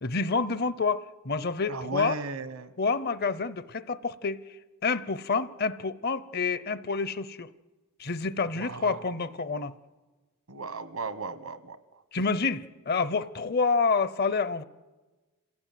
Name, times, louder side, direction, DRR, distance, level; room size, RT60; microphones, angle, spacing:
voice 1, 0.0-2.2 2.8-4.4 4.8-7.5 8.0-9.7 12.1-14.6, left 4 dB, 45° left, 15 dB, 0.7 m, -28 dB
voice 2, 1.7-2.7 8.5-9.1 10.5-11.8, right 3 dB, 80° right, 12 dB, 1.3 m, -36 dB
27.0 x 16.0 x 9.3 m, 1.3 s
head